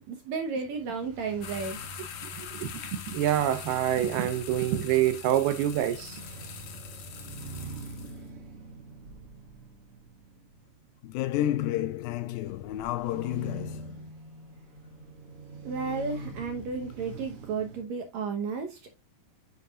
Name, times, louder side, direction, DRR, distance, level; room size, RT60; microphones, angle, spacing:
voice 1, 0.1-1.8 15.6-19.0, right 5 dB, 70° right, 1.8 m, -33 dB
sound 1, 0.6-17.8, right 2 dB, 50° right, 1.9 m, -45 dB
sound 2, 1.4-8.2, left 7 dB, 65° left, 2.4 m, -42 dB
voice 2, 2.2-6.2, right 12 dB, 85° right, 2.7 m, -27 dB
voice 3, 11.0-14.1, left 13 dB, 80° left, 2.3 m, -31 dB
9.3 x 6.6 x 2.4 m
omnidirectional pair, 4.4 m